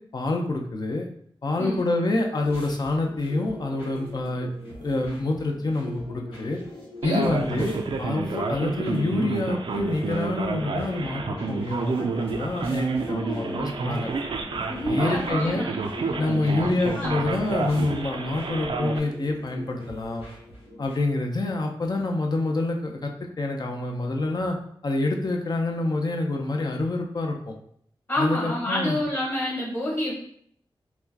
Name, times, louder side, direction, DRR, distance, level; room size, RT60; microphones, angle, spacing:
voice 1, 0.1-1.1 1.4-4.5 4.8-6.6 7.0-14.1 14.9-15.7 16.2-20.3 20.8-23.1 23.4-24.6 24.8-27.6 28.2-29.0, left 2 dB, 45° left, 1 dB, 0.6 m, -27 dB
sound 1, 2.4-21.0, left 1 dB, 80° left, 1.1 m, -42 dB
voice 2, 7.0-7.3 13.0-13.7 14.7-17.2 28.1-30.2, left 1 dB, 25° left, -4 dB, 1.4 m, -29 dB
Male speech man speaking, 7.0-19.0, right 4 dB, 65° right, 0.4 m, -30 dB
4.2 x 2.2 x 2.8 m, 0.65 s
wide cardioid pair, 75°, 9 cm